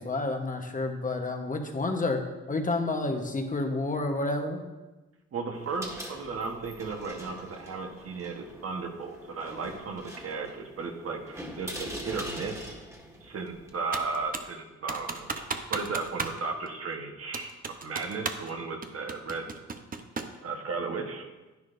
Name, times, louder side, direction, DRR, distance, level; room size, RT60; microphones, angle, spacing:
voice 1, 0.0-2.2 2.5-4.6, left 2 dB, 25° left, 4 dB, 1.1 m, -29 dB
voice 2, 5.3-12.7 13.2-17.5 17.8-19.5 20.4-21.3, right 4 dB, 50° right, 3 dB, 1.2 m, -35 dB
sound 1, 5.5-14.3, equal, 10° right, 1.6 m, -43 dB
Computer keyboard, 13.9-14.6 14.9-16.4 16.7-16.8 17.3-18.5 18.8-20.4, right 4 dB, 30° right, 0.7 m, -35 dB
10.5 x 9.7 x 2.6 m, 1.1 s
cardioid pair, 90°, 30 cm